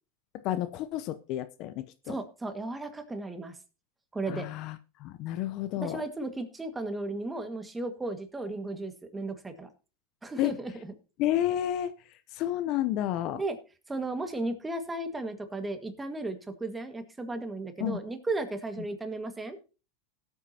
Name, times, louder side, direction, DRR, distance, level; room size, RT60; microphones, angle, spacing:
voice 1, 0.3-2.1 4.3-6.0 10.4-10.6 11.2-11.9 12.3-13.4 17.8-18.0, left 12 dB, 50° left, 0.7 m, -31 dB
voice 2, 2.1-3.6 4.1-4.5 5.8-9.7 10.2-10.9 13.3-13.6 13.9-19.6, right 2 dB, 10° right, 1.8 m, -35 dB
18.0 x 8.3 x 2.9 m
hypercardioid pair, 100°, 0 cm